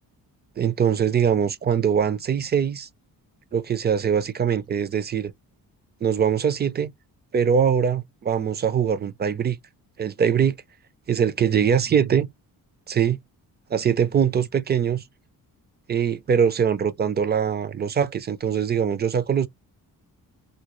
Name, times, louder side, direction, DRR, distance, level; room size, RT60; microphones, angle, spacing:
voice 1, 0.6-2.9 3.5-5.3 6.0-6.9 7.3-9.6 10.0-10.5 11.1-12.3 12.9-13.2 13.7-15.0 15.9-19.5, right 7 dB, 30° right, 0.4 m, -22 dB
3.8 x 2.2 x 3.0 m
cardioid pair, 145°, 36 cm